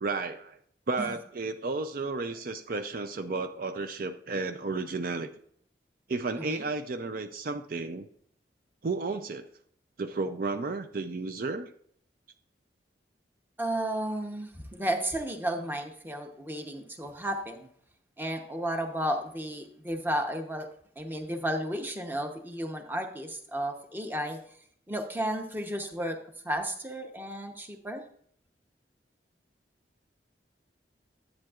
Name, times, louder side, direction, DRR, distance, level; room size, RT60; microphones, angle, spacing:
voice 1, 0.0-0.6 0.9-5.3 6.1-8.1 8.8-9.5 10.0-11.7, right 3 dB, 55° right, 8 dB, 0.5 m, -33 dB
voice 2, 13.6-17.7 18.2-20.7 21.0-24.4 24.9-26.2 26.4-28.0, right 1 dB, 10° right, 5 dB, 0.9 m, -33 dB
10.5 x 8.4 x 2.4 m, 0.64 s
head